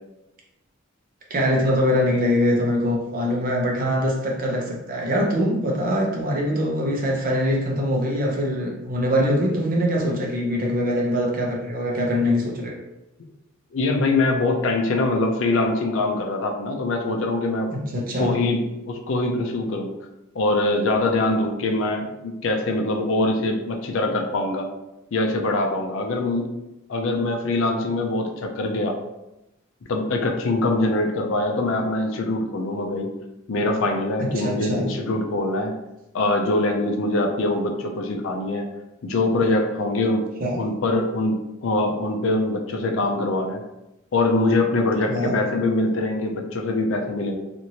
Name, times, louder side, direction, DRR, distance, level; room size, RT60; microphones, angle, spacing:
voice 1, 1.3-12.8 17.7-18.4 34.2-34.9 40.4-40.6 45.1-45.3, equal, 45° right, -1 dB, 0.7 m, -23 dB
voice 2, 13.7-17.7 18.2-19.9 20.3-24.7 25.1-26.5 26.9-29.0 29.9-33.1 33.5-35.7 36.1-38.7 39.0-40.3 40.6-43.6 44.1-47.3, left 2 dB, 65° left, 3 dB, 0.4 m, -23 dB
2.9 x 2.5 x 2.8 m, 0.94 s
head